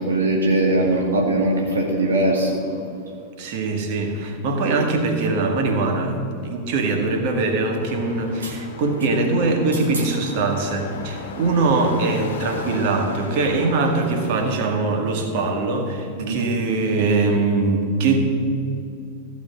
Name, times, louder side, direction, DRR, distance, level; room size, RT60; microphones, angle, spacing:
voice 1, 0.0-2.7 8.4-8.5 9.7-10.0 16.2-16.4, right 1 dB, 70° right, 0 dB, 1.3 m, -21 dB
voice 2, 3.4-18.2, right 3 dB, 45° right, 4 dB, 1.8 m, -22 dB
sound 1, 7.8-14.6, left 5 dB, 55° left, 1.2 m, -36 dB
15.0 x 6.1 x 7.5 m, 2.6 s
figure-of-eight pair, 90°, 0 cm